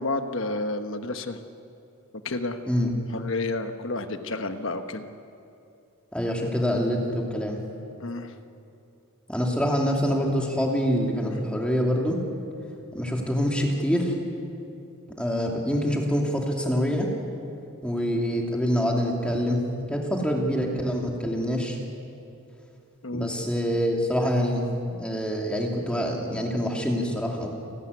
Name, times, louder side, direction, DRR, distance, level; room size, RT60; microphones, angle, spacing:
voice 1, 0.0-1.4 2.2-2.6 3.1-5.1 8.0-8.3 23.0-23.3, left 2 dB, 60° left, 8 dB, 1.2 m, -30 dB
voice 2, 6.1-7.6 9.3-12.2 12.9-14.1 15.2-17.1 17.8-19.6 19.9-21.8 23.1-24.6 25.0-27.5, equal, 5° left, 0 dB, 2.5 m, -25 dB
29.0 x 12.5 x 9.6 m, 2.7 s
head